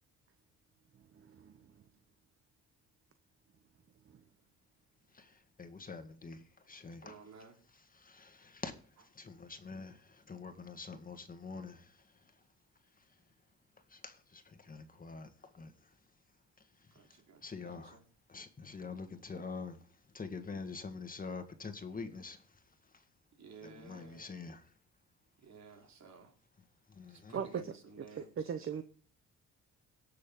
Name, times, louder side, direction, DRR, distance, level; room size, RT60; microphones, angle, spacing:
voice 1, 5.1-7.2 7.7-8.7 9.0-12.0 13.9-15.7 16.8-16.9 17.4-18.0 18.3-19.8 20.1-22.5 23.6-24.7 26.9-27.4, left 4 dB, 30° left, 1.8 m, -46 dB
voice 2, 7.0-7.5 16.9-18.0 23.4-24.3 25.4-26.3 27.1-28.3, right 5 dB, 65° right, 3.5 m, -54 dB
voice 3, 28.1-28.8, right 7 dB, 45° right, 1.0 m, -38 dB
17.5 x 6.8 x 3.8 m
cardioid pair, 90°, 30 cm